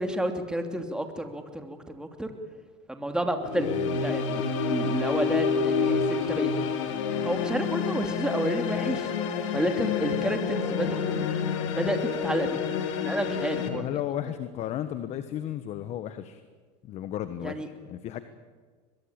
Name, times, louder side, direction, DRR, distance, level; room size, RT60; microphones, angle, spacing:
voice 1, 0.0-2.3 2.9-3.7 4.0-6.5 7.2-9.1 9.5-11.3 11.7-12.6 13.0-13.9 17.4-17.7, right 1 dB, 5° right, 6 dB, 2.9 m, -30 dB
sound 1, 3.4-13.7, left 6 dB, 85° left, 3.2 m, -28 dB
voice 2, 3.6-4.0 13.7-16.4 16.8-18.2, left 11 dB, 45° left, 11 dB, 1.4 m, -34 dB
23.0 x 21.5 x 8.9 m, 1.5 s
supercardioid pair, 120°, 15 cm